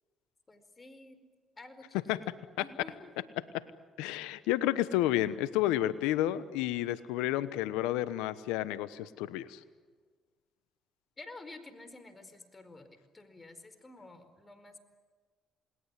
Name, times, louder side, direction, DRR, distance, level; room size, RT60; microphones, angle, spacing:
voice 1, 0.5-1.2 1.6-3.1 11.2-14.8, left 2 dB, 25° left, 10 dB, 4.6 m, -51 dB
voice 2, 4.0-9.6, left 14 dB, 85° left, 15 dB, 1.1 m, -31 dB
28.5 x 20.5 x 10.0 m, 1.5 s
supercardioid pair, 65°, 0 cm